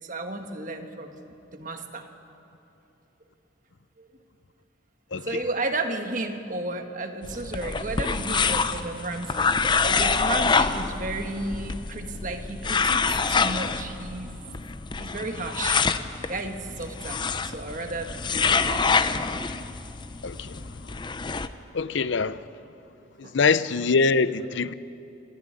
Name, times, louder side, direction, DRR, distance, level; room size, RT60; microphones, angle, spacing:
voice 1, 0.0-2.1 4.0-4.1 5.2-9.5 9.8-14.4 15.0-15.8 16.3-18.9 23.2-23.4, right 2 dB, 40° right, 1.4 m, -33 dB
sound 1, 7.2-21.5, left 5 dB, 25° left, 0.5 m, -26 dB
voice 2, 20.2-21.0 21.7-22.4 23.2-24.7, left 4 dB, 70° left, 0.6 m, -24 dB
25.5 x 11.0 x 9.8 m
head